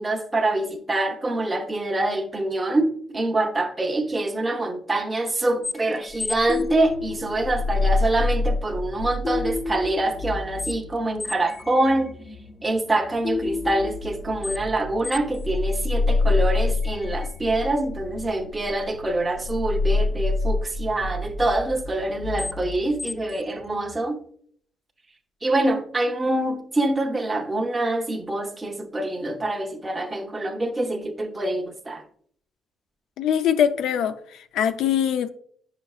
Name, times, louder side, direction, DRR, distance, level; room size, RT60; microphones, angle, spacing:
voice 1, 0.0-12.2 12.6-24.2 25.4-32.0, right 2 dB, 20° right, 0.8 m, -25 dB
sound 1, 5.6-24.0, left 3 dB, 45° left, 0.7 m, -28 dB
voice 2, 33.2-35.3, left 9 dB, 85° left, 0.5 m, -23 dB
9.7 x 5.8 x 2.4 m
cardioid pair, 90°, 0 cm